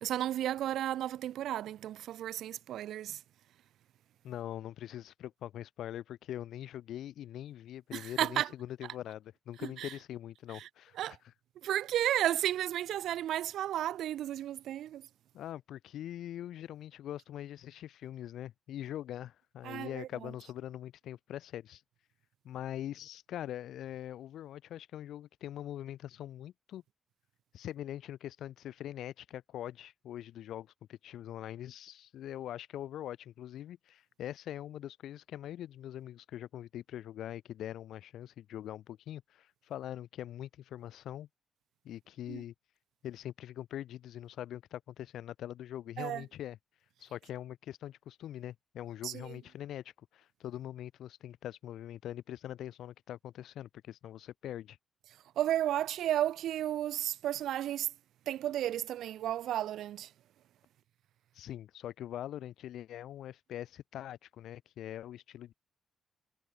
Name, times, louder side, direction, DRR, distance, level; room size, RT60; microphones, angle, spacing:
voice 1, 0.0-3.2 7.9-8.5 9.8-9.9 11.0-11.2 11.6-15.0 19.6-20.1 42.3-42.4 46.0-46.2 49.0-49.1 55.4-57.9 58.3-60.1, right 12 dB, 90° right, 0.4 m, -33 dB
voice 2, 4.2-11.0 11.2-11.3 15.3-21.8 22.4-26.8 27.5-41.3 41.8-42.5 43.0-46.6 47.0-54.8 61.3-65.6, left 12 dB, 85° left, 4.0 m, -43 dB
cardioid pair, 145°, 0 cm